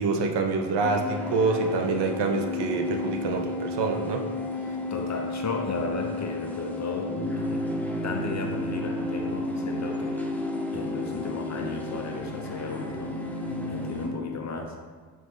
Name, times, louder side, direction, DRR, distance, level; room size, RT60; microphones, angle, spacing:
voice 1, 0.0-4.3, right 3 dB, 70° right, 3 dB, 0.6 m, -26 dB
sound 1, 0.8-14.1, left 1 dB, 5° left, 0.5 m, -32 dB
voice 2, 4.5-7.6 8.0-10.3 10.7-13.1 13.7-14.7, left 4 dB, 40° left, 3 dB, 0.7 m, -34 dB
4.1 x 3.5 x 3.2 m, 1.5 s
supercardioid pair, 60°, 43 cm